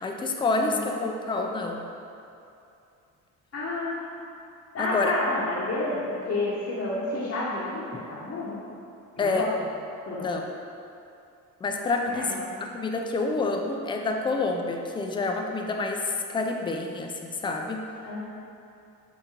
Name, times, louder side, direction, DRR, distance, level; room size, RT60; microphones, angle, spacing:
voice 1, 0.0-1.8 4.8-5.1 7.9-8.0 9.2-9.4 10.2-10.5 11.6-12.5 12.7-17.8, left 3 dB, 15° left, 2 dB, 0.3 m, -28 dB
voice 2, 0.6-0.9 3.5-4.0 4.7-8.6 9.2-9.5 10.1-10.3 12.1-12.4 18.0-18.2, left 2 dB, 40° left, -8 dB, 0.8 m, -30 dB
4.8 x 2.6 x 2.8 m, 2.7 s
supercardioid pair, 70°, 37 cm